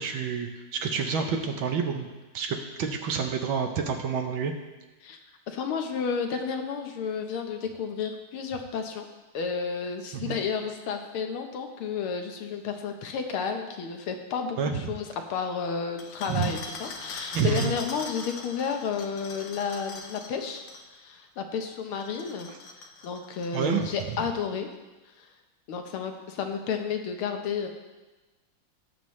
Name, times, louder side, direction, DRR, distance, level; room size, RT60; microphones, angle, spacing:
voice 1, 0.0-2.1 2.3-4.5 10.1-10.4 14.6-14.9 16.3-16.5 17.3-17.7 23.5-23.9, right 6 dB, 75° right, 4 dB, 1.6 m, -28 dB
voice 2, 5.5-9.1 9.3-20.6 20.9-24.7 25.2-25.3 25.7-27.7, left 6 dB, 85° left, 5 dB, 1.9 m, -32 dB
sound 1, 16.0-20.9 21.9-24.4, left 4 dB, 65° left, 1.7 m, -42 dB
18.0 x 7.2 x 3.2 m, 1.2 s
omnidirectional pair, 2.3 m